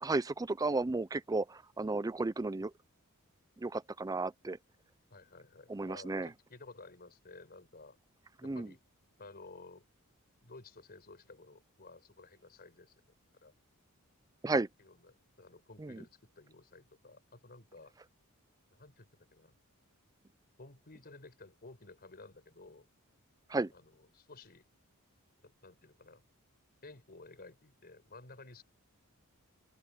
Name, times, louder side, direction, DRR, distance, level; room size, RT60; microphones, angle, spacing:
voice 1, 0.0-2.7 3.6-4.6 5.7-6.3 8.4-8.7 14.4-14.7 15.8-16.0 23.5-23.7, right 3 dB, 15° right, 0.4 m, -33 dB
voice 2, 5.1-8.0 8.4-8.8 9.2-9.8 10.4-13.0 13.4-13.5 14.8-17.9 18.7-19.6 20.6-22.9 23.7-24.6 25.4-26.2 26.8-28.6, left 3 dB, 45° left, 4.9 m, -54 dB
open air
head